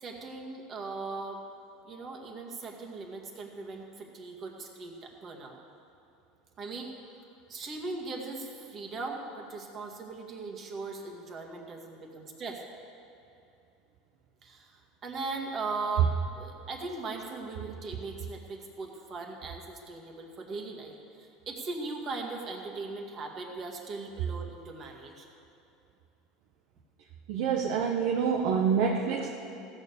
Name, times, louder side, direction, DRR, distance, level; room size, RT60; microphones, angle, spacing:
voice 1, 0.0-1.4 1.8-5.6 6.6-6.9 7.5-12.6 14.4-16.1 16.4-25.3, right 3 dB, 40° right, 1 dB, 2.1 m, -39 dB
voice 2, 27.3-29.3, right 6 dB, 70° right, 2 dB, 1.0 m, -27 dB
15.5 x 7.2 x 6.8 m, 2.7 s
supercardioid pair, 105°, 0 cm